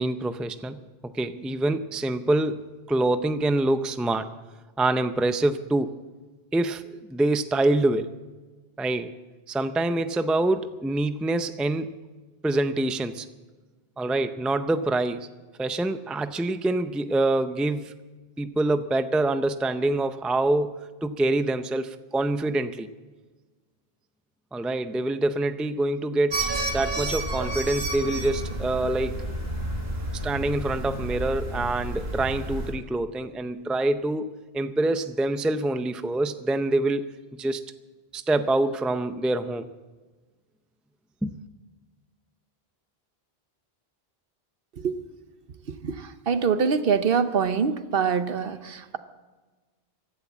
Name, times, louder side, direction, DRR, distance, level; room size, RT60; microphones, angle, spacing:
voice 1, 0.0-4.3 4.8-6.0 6.5-8.1 8.8-9.1 9.5-11.9 12.4-13.3 14.0-15.3 15.6-17.9 18.4-22.9 24.5-29.2 30.2-37.6 38.1-39.7 41.2-41.3, right 2 dB, ahead, 10 dB, 0.4 m, -26 dB
sound 1, 26.3-32.7, right 1 dB, 85° right, 2.3 m, -31 dB
voice 2, 45.8-49.0, right 6 dB, 65° right, 11 dB, 1.0 m, -24 dB
15.5 x 11.5 x 7.3 m, 1.3 s
omnidirectional pair, 1.0 m